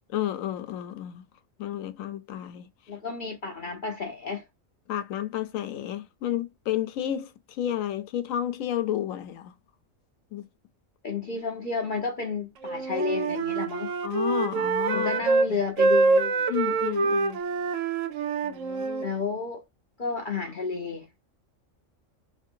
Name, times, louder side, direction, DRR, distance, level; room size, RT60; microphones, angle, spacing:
voice 1, 0.1-1.2 1.6-2.7 4.9-9.5 10.3-10.5 14.0-15.1 15.5-15.6 16.5-17.4 18.4-19.1, left 11 dB, 85° left, 1.0 m, -31 dB
voice 2, 2.9-4.4 11.0-13.9 14.9-16.5 19.0-19.6 20.0-21.1, left 4 dB, 50° left, 0.7 m, -31 dB
Wind instrument woodwind instrument, 12.6-15.5 15.8-19.1, right 4 dB, 80° right, 1.0 m, -25 dB
2.8 x 2.6 x 2.6 m
omnidirectional pair, 1.4 m